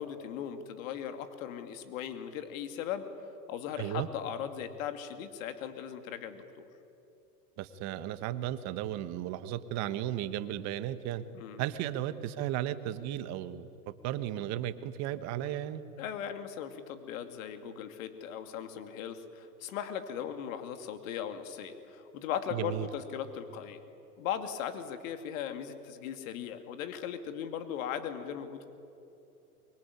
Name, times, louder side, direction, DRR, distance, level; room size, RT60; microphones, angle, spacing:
voice 1, 0.0-3.1 3.5-6.7 11.3-11.6 16.0-23.8 24.2-28.7, left 9 dB, 55° left, 8 dB, 2.6 m, -38 dB
voice 2, 3.8-4.1 7.6-11.2 11.6-15.8 22.5-22.9, right 12 dB, 35° right, 12 dB, 1.4 m, -35 dB
24.0 x 23.5 x 9.8 m, 2.9 s
hypercardioid pair, 120°, 48 cm